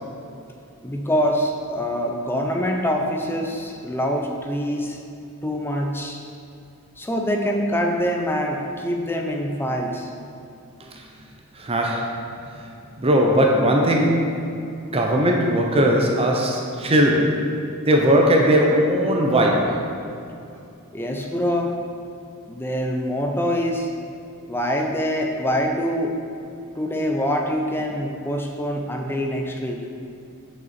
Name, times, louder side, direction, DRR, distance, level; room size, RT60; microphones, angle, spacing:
voice 1, 0.8-5.0 5.4-6.2 7.0-10.1 20.9-21.7 22.5-23.9 24.5-26.1 26.8-29.8, equal, 10° left, 1 dB, 0.6 m, -25 dB
voice 2, 11.6-12.2 13.0-14.5 14.9-17.5 17.9-19.8, equal, 25° right, 0 dB, 0.7 m, -19 dB
6.7 x 6.0 x 4.3 m, 2.6 s
head